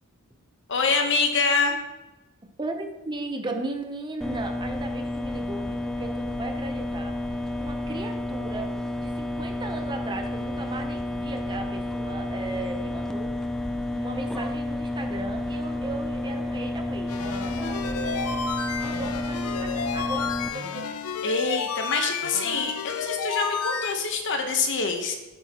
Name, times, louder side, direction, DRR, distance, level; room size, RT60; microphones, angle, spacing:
voice 1, 0.7-1.8 21.2-25.2, left 4 dB, 55° left, 4 dB, 1.1 m, -25 dB
voice 2, 2.6-13.3 13.6-20.9, right 2 dB, 20° right, 4 dB, 0.7 m, -37 dB
sound 1, 4.2-20.5, left 1 dB, 5° left, 0.4 m, -31 dB
sound 2, 17.1-23.9, left 5 dB, 80° left, 0.6 m, -31 dB
8.7 x 8.0 x 3.0 m, 1.1 s
head